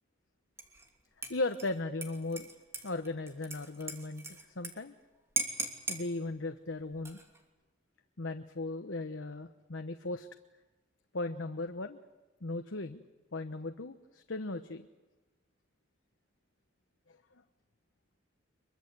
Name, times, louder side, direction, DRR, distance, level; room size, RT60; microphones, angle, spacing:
Dishes pots and pans / Liquid, 0.6-0.9 1.2-4.7 5.0-5.1 5.4-6.0 6.9-7.4, right 3 dB, 15° right, 2.7 m, -38 dB
voice 1, 1.3-2.5 2.8-5.0 5.9-7.2 8.2-10.3 11.1-12.0 12.4-13.0 13.3-14.9 17.1-17.2, left 2 dB, 90° left, 7 dB, 1.1 m, -37 dB
24.5 x 22.5 x 8.1 m, 1.2 s
head